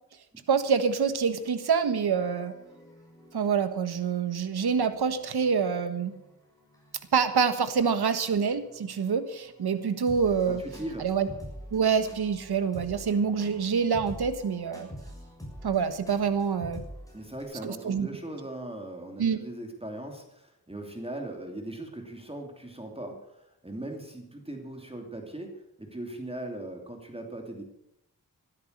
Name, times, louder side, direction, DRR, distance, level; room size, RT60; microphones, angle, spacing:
voice 1, 0.5-2.5 3.3-6.1 7.1-10.6 11.0-11.3 11.7-14.9 15.6-16.8 17.6-18.1 19.2-19.4, right 6 dB, 80° right, 11 dB, 1.5 m, -26 dB
sound 1, 0.6-17.4, equal, 10° left, 6.9 m, -48 dB
voice 2, 10.5-11.1 17.1-27.6, right 1 dB, 15° right, 3 dB, 2.8 m, -39 dB
14.0 x 12.5 x 6.6 m, 0.80 s
cardioid pair, 65°, 38 cm